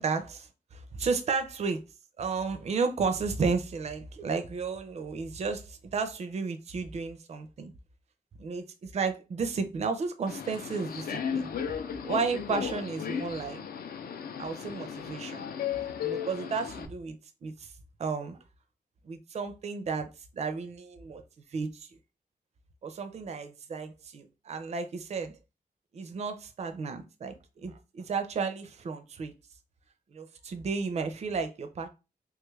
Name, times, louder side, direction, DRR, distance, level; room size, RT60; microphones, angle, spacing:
voice 1, 0.0-1.8 2.2-7.7 8.4-11.5 12.0-13.6 14.4-15.4 16.0-17.2 17.4-17.7 18.0-18.4 19.1-21.2 21.5-21.9 22.8-25.3 25.9-29.3 30.1-31.9, right 4 dB, 45° right, 0.4 m, -33 dB
Subway metro underground, 10.3-16.9, left 8 dB, 70° left, 0.4 m, -35 dB
3.3 x 2.3 x 3.1 m
wide cardioid pair, 160°, 16 cm